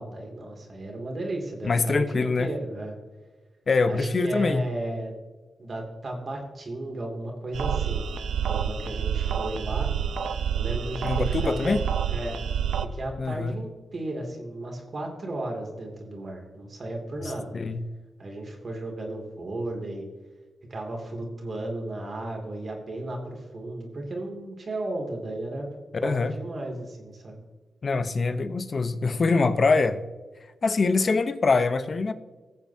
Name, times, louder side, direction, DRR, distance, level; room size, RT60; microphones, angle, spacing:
voice 1, 0.0-3.0 3.9-5.1 5.6-8.0 8.5-9.9 10.5-11.8 12.1-12.4 12.9-17.5 18.2-20.1 20.7-25.7 26.0-27.4, right 1 dB, 55° right, 1 dB, 2.8 m, -34 dB
voice 2, 1.6-2.5 3.7-4.6 11.0-11.8 13.2-13.5 17.2-17.8 26.0-26.3 27.8-30.0 30.6-32.1, left 4 dB, 55° left, 10 dB, 1.0 m, -24 dB
sound 1, 7.5-12.8, right 8 dB, 85° right, 0.6 m, -28 dB
18.5 x 7.2 x 2.9 m, 1.3 s
cardioid pair, 55°, 0 cm